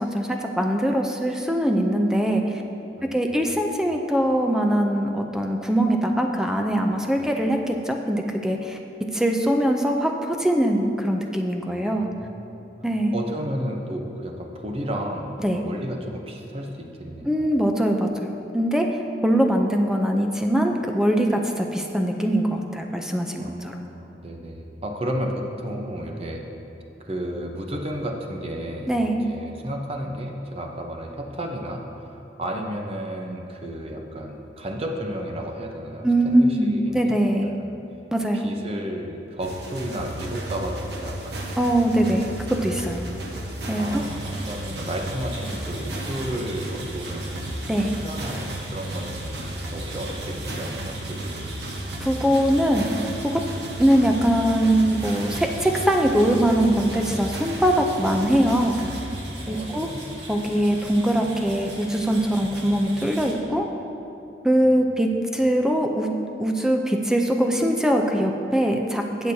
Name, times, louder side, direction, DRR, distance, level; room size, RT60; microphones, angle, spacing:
voice 1, 0.0-2.6 3.1-8.8 9.1-12.1 12.8-13.1 15.4-15.6 17.3-18.9 19.2-23.8 28.9-29.2 36.0-37.5 38.1-38.4 41.6-43.0 43.7-44.0 47.7-47.9 52.0-52.9 53.3-53.4 53.8-58.8 59.5-59.9 60.3-63.6 64.4-66.1 66.4-69.3, right 1 dB, 5° right, 2 dB, 0.5 m, -22 dB
voice 2, 3.0-3.4 7.1-7.3 11.6-12.7 13.1-17.5 23.4-26.4 27.0-28.9 29.2-31.8 32.4-37.2 37.6-37.8 38.3-41.8 43.8-47.4 48.0-49.4 49.7-51.7 59.4-60.0 64.6-64.8, equal, 35° right, 2 dB, 0.8 m, -33 dB
sound 1, 39.4-59.0, right 1 dB, 70° right, 1.1 m, -34 dB
sound 2, 43.8-63.3, right 1 dB, 85° right, 1.5 m, -39 dB
17.0 x 6.1 x 2.8 m, 2.9 s
head